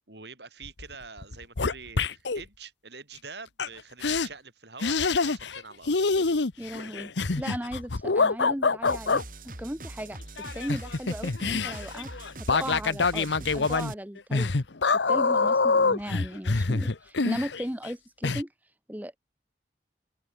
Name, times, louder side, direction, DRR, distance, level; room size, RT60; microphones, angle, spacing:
voice 1, 0.0-5.9, right 4 dB, 70° right, 6.3 m, -45 dB
sound 1, 0.6-0.9 1.2-2.4 3.6-3.7 4.0-4.3 4.8-5.6 5.9-9.2 10.4-17.9 18.2-18.4, left 4 dB, 80° left, 1.0 m, -26 dB
voice 2, 6.6-10.2 10.5-12.1 12.5-14.5 15.1-18.5 18.9-19.2, equal, 10° right, 1.1 m, -36 dB
sound 2, 8.8-13.9, right 2 dB, 50° right, 7.8 m, -42 dB
open air
head